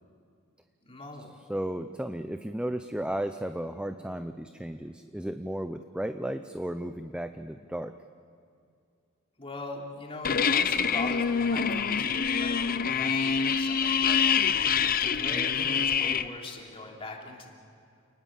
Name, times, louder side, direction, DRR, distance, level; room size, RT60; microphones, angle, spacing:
voice 1, 0.8-1.4 9.4-17.5, left 2 dB, 25° left, 0 dB, 3.3 m, -41 dB
voice 2, 1.5-7.9, right 1 dB, 5° right, 8 dB, 0.6 m, -34 dB
sound 1, 10.2-16.2, left 6 dB, 45° left, 0.7 m, -26 dB
29.0 x 19.5 x 7.6 m, 2.4 s
head